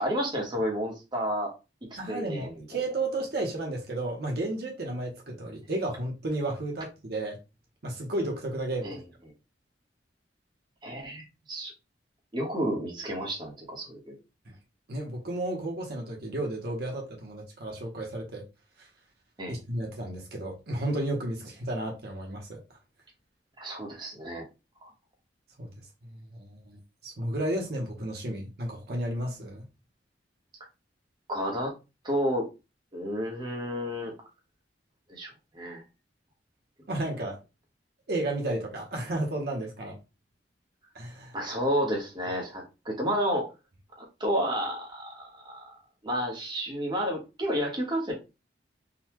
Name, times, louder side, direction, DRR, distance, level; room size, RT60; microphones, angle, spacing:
voice 1, 0.0-1.5 2.1-2.6 8.8-9.0 10.8-11.7 12.3-14.2 19.4-19.6 23.6-24.4 24.8-24.9 31.3-31.7 32.0-32.5 32.9-34.1 35.1-35.8 41.3-43.5 44.0-45.8 46.0-48.1, equal, 25° right, 1.0 m, -31 dB
voice 2, 2.0-7.4 7.8-8.9 14.5-14.6 14.9-18.4 18.8-18.9 19.5-22.6 25.6-25.7 26.1-29.6 36.9-37.4 38.1-40.0 40.9-41.4, right 1 dB, 60° right, 0.9 m, -33 dB
3.8 x 2.2 x 2.9 m
head